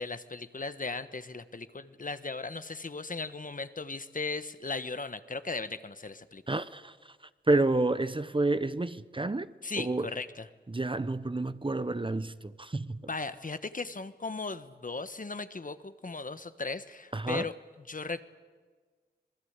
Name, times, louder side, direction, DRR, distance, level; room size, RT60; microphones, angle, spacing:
voice 1, 0.0-6.4 9.6-10.5 13.1-17.5 17.9-18.2, left 3 dB, 50° left, 1.3 m, -37 dB
voice 2, 6.5-7.2 7.5-9.5 9.8-10.1 10.7-13.0 17.1-17.4, right 2 dB, 30° right, 0.9 m, -29 dB
26.0 x 20.0 x 8.2 m
cardioid pair, 50°, 18 cm